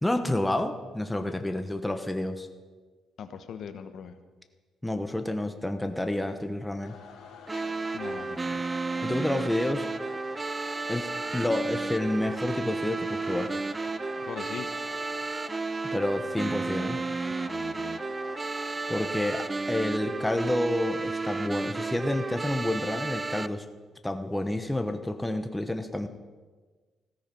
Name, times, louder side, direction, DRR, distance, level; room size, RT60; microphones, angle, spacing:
voice 1, 0.0-2.5 4.8-7.0 9.0-9.9 10.9-13.5 15.9-17.0 18.9-23.7 24.0-26.1, left 1 dB, 10° left, 7 dB, 1.0 m, -29 dB
voice 2, 3.2-4.2 7.9-8.6 14.2-14.7 17.3-18.0, left 7 dB, 65° left, 9 dB, 1.1 m, -41 dB
sound 1, 6.8-19.4, left 6 dB, 80° left, 2.8 m, -48 dB
sound 2, 7.5-23.5, right 3 dB, 20° right, 0.4 m, -32 dB
15.5 x 13.5 x 5.4 m, 1.4 s
cardioid pair, 100°, 0 cm